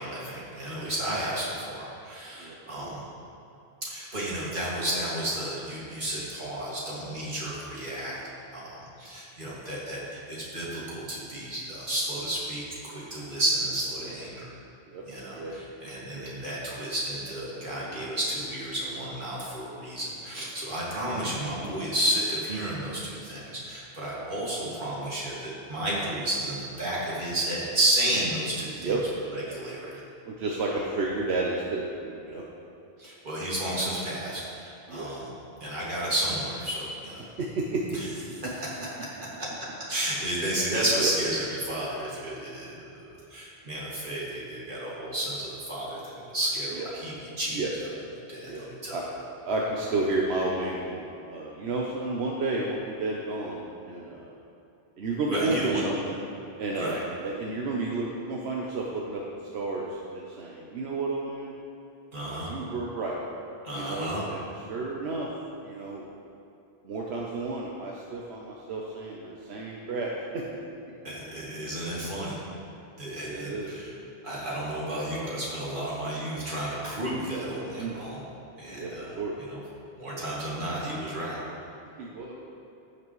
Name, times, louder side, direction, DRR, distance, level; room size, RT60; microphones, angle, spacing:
voice 1, 0.0-3.0 3.8-8.2 8.5-14.5 15.1-28.9 29.3-29.9 33.0-35.3 35.6-37.2 37.9-38.1 38.4-38.8 39.4-39.5 39.9-47.6 48.3-49.0 55.3-55.8 56.8-57.0 62.1-62.5 63.6-64.2 71.0-72.4 73.0-73.9 74.2-78.2 78.6-79.6 80.0-81.4, right 1 dB, 55° right, -7 dB, 2.3 m, -32 dB
voice 2, 2.4-2.9 14.1-14.2 14.9-15.0 15.3-15.5 16.1-16.3 17.7-18.0 21.6-21.9 24.1-24.2 28.8-29.0 30.3-32.4 34.9-35.1 37.4-38.0 38.2-38.3 41.0-41.1 46.7-46.9 47.5-47.7 48.4-48.6 48.9-49.0 49.4-54.3 55.0-55.6 55.8-56.2 56.6-59.2 59.5-61.5 62.5-63.2 63.7-64.4 64.7-65.3 65.6-66.1 66.8-70.4 72.2-72.4 73.2-73.8 77.8-78.0 78.7-79.3 82.0-82.3, right 3 dB, 85° right, -2 dB, 1.1 m, -32 dB
15.5 x 5.8 x 3.1 m, 2.8 s
omnidirectional pair, 1.1 m